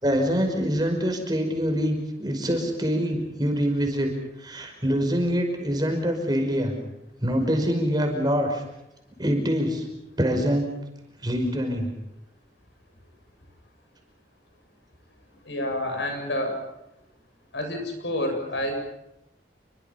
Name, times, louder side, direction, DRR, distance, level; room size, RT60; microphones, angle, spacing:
voice 1, 0.0-4.1 4.4-6.7 7.2-8.6 9.2-9.9 10.2-10.7 11.2-11.9, equal, 25° right, 3 dB, 5.5 m, -25 dB
voice 2, 15.4-16.5 17.5-18.8, left 1 dB, 90° left, 4 dB, 7.6 m, -28 dB
29.0 x 23.5 x 5.8 m, 0.88 s
head